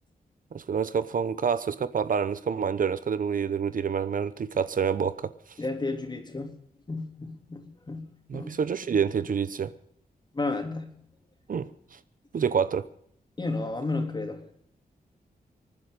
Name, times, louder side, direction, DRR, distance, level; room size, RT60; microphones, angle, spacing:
voice 1, 0.5-5.2 8.3-9.7 11.5-11.7 12.3-12.9, right 6 dB, 60° right, 0.8 m, -27 dB
voice 2, 5.6-6.6 6.9-8.5 10.3-10.9 13.4-14.4, left 3 dB, 30° left, 3.4 m, -32 dB
26.5 x 9.6 x 5.3 m
wide cardioid pair, 95°, 16 cm